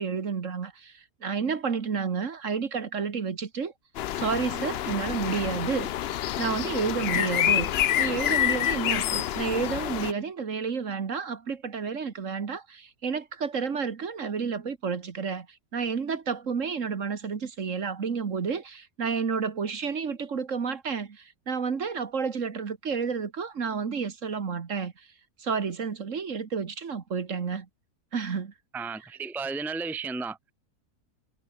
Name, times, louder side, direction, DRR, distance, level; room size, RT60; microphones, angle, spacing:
voice 1, 0.0-3.7 4.1-5.9 6.4-7.7 8.0-15.5 15.7-25.1 25.4-27.7 28.1-28.5, right 5 dB, 50° right, 1.8 m, -30 dB
sound 1, 3.9-10.1, left 12 dB, 80° left, 0.5 m, -27 dB
voice 2, 28.7-30.5, right 4 dB, ahead, 0.9 m, -34 dB
omnidirectional pair, 1.7 m